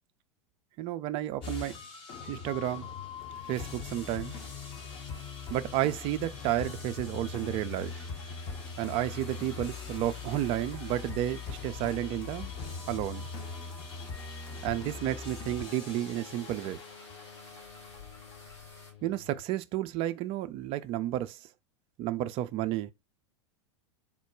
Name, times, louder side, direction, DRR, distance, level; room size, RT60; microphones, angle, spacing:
voice 1, 0.8-1.7 2.3-2.9 3.5-4.3 5.5-8.1 8.8-12.5 12.9-13.3 14.6-16.8 19.0-21.4 22.0-22.9, right 13 dB, 40° right, 0.4 m, -32 dB
sound 1, 1.4-19.4, left 5 dB, 35° left, 1.0 m, -41 dB
sound 2, 3.8-18.9, left 1 dB, 70° left, 2.0 m, -53 dB
3.6 x 2.2 x 4.4 m
figure-of-eight pair, 90°, 15 cm